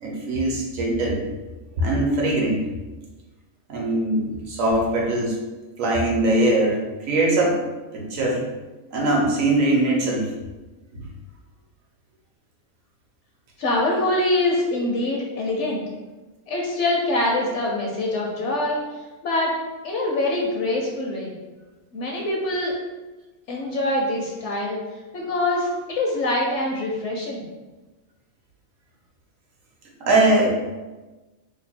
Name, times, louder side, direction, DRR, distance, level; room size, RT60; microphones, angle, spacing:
voice 1, 0.0-1.2 1.8-2.6 3.7-5.4 5.8-6.8 7.1-7.7 7.9-8.5 8.9-10.3 10.9-11.0 30.0-30.6, right 1 dB, 65° right, -1 dB, 1.0 m, -21 dB
voice 2, 13.6-15.8 16.5-18.8 19.2-19.6 19.8-21.3 21.9-22.7 23.5-24.8 25.1-27.4, left 2 dB, 65° left, -2 dB, 0.8 m, -24 dB
2.8 x 2.3 x 4.2 m, 1.2 s
omnidirectional pair, 1.6 m